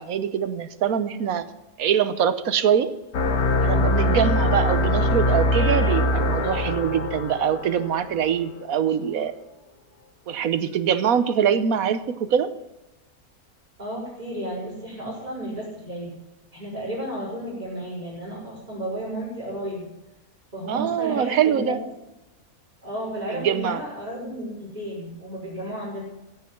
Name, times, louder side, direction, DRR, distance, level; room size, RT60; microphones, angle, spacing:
voice 1, 0.0-1.4 1.8-2.9 3.6-9.3 10.3-12.5 20.7-21.8 23.4-23.8, right 8 dB, 70° right, 12 dB, 1.3 m, -23 dB
sound 1, 3.1-8.4, left 1 dB, 80° left, 1.6 m, -22 dB
voice 2, 13.8-16.1 16.5-19.8 20.5-21.8 22.8-26.0, right 1 dB, 25° right, -10 dB, 4.9 m, -32 dB
15.5 x 9.4 x 5.9 m, 0.97 s
omnidirectional pair, 1.6 m